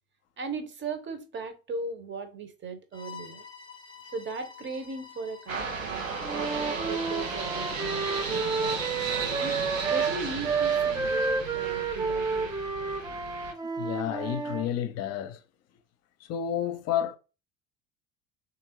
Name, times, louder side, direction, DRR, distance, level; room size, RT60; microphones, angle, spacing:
voice 1, 0.4-3.4 4.1-6.1 6.3-8.8 9.3-9.6 9.8-12.5, right 4 dB, 30° right, 0.9 m, -37 dB
Bowed string instrument, 2.9-9.9, left 6 dB, 10° left, 0.7 m, -48 dB
sound 1, 5.5-13.5, right 5 dB, 90° right, 0.7 m, -34 dB
Wind instrument woodwind instrument, 6.2-10.1 10.4-14.7, right 4 dB, 10° right, 0.4 m, -30 dB
voice 2, 13.8-15.4 16.3-17.2, left 10 dB, 40° left, 0.7 m, -30 dB
3.6 x 2.6 x 2.9 m
figure-of-eight pair, 65°, 38 cm